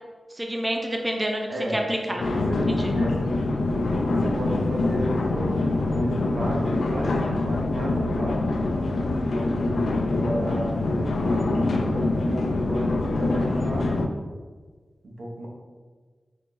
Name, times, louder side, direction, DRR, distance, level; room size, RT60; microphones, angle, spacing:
voice 1, 0.3-2.2 2.7-2.9, equal, 20° right, 1 dB, 0.5 m, -28 dB
voice 2, 1.5-1.8 2.1-2.6 2.9-3.3 4.1-8.5 9.0-13.9 15.0-15.5, right 1 dB, 80° right, -2 dB, 0.7 m, -33 dB
sound 1, 2.2-14.1, left 2 dB, 90° left, 0.3 m, -25 dB
5.3 x 2.0 x 3.3 m, 1.4 s
cardioid pair, 55°, 0 cm